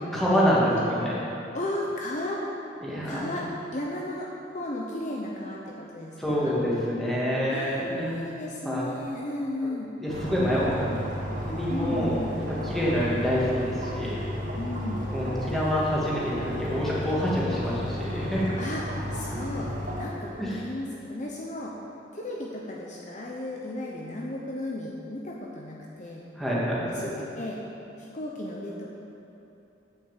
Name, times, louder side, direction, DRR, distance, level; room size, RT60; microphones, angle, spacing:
voice 1, 0.1-1.1 2.8-3.3 6.2-8.1 8.6-8.8 10.0-12.2 12.6-14.2 15.1-18.5 20.4-20.6 26.4-27.1, equal, ahead, -7 dB, 2.1 m, -27 dB
voice 2, 1.5-2.4 3.0-6.1 6.4-6.5 7.5-9.9 11.7-12.3 14.6-15.1 18.6-18.8 19.1-21.7 22.1-26.2 26.9-27.6 28.0-28.9, left 1 dB, 40° left, -2 dB, 0.9 m, -34 dB
sound 1, 10.1-20.1, left 1 dB, 50° right, 2.0 m, -33 dB
8.7 x 7.2 x 7.3 m, 2.9 s
head